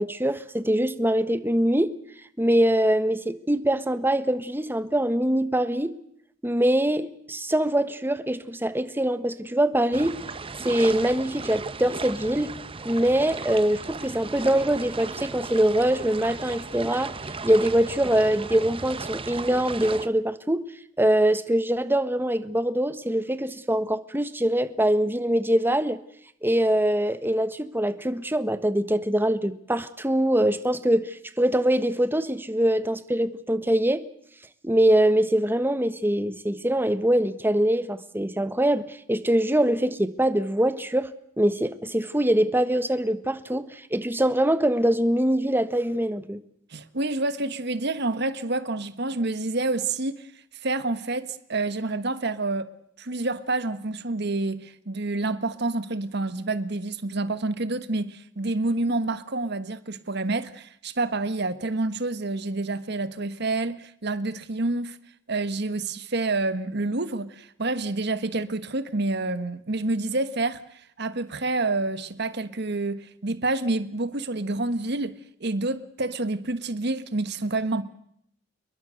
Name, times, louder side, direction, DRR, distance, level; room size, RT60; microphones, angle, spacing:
voice 1, 0.0-1.9 2.4-6.0 6.4-10.2 10.6-12.6 12.8-17.1 17.4-20.7 21.0-26.0 26.4-34.0 34.6-46.4, right 1 dB, 10° right, 1.3 m, -23 dB
sound 1, 9.9-20.1, right 4 dB, 30° right, 1.0 m, -36 dB
voice 2, 46.7-50.3 50.6-52.7 53.0-65.0 65.3-77.8, right 2 dB, 60° right, 1.5 m, -28 dB
28.5 x 22.0 x 6.5 m
head